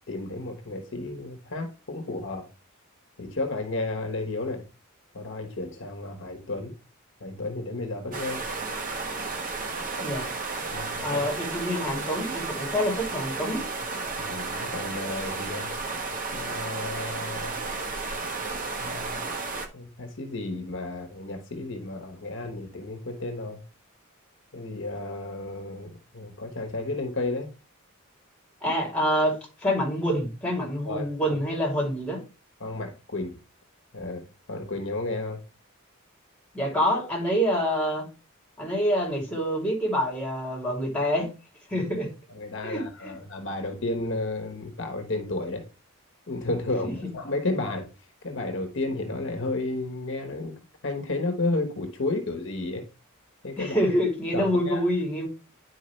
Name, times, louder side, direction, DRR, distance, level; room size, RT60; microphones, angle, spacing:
voice 1, 0.1-2.4 3.2-4.6 5.1-6.7 7.2-8.4 10.7-11.3 14.2-15.7 16.3-17.6 18.8-19.3 19.7-23.6 24.5-27.5 30.9-31.4 32.6-33.4 33.9-35.4 41.7-41.9 42.3-45.6 46.3-47.9 48.2-50.6 50.8-52.8 53.4-53.8 54.3-54.8, left 2 dB, 60° left, 1.1 m, -32 dB
sound 1, 8.1-19.7, right 3 dB, 40° right, 1.2 m, -33 dB
voice 2, 11.0-13.6 28.6-32.2 36.5-38.1 38.6-41.3 41.7-42.1 42.6-43.1 46.8-46.9 53.6-55.3, equal, 5° left, 3.0 m, -26 dB
10.0 x 4.7 x 3.2 m
head